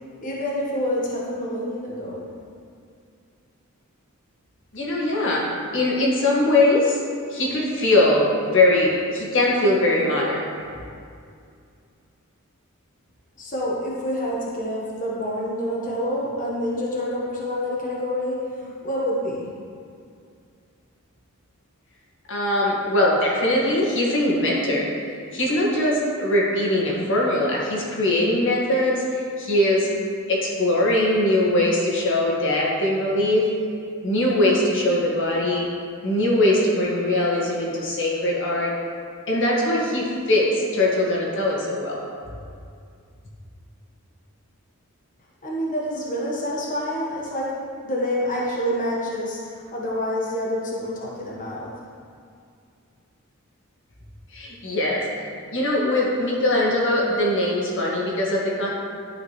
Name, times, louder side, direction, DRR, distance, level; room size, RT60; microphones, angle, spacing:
voice 1, 0.2-2.3 13.4-19.5 45.4-47.5 47.8-51.7, equal, 40° left, -5 dB, 1.3 m, -27 dB
voice 2, 4.7-5.5 5.7-7.0 7.3-10.5 22.3-24.9 25.3-29.9 30.3-33.4 34.0-35.7 36.0-38.7 39.3-42.0 54.3-55.0 55.5-58.7, left 1 dB, 60° left, -4 dB, 1.8 m, -21 dB
12.5 x 5.1 x 3.2 m, 2.3 s
head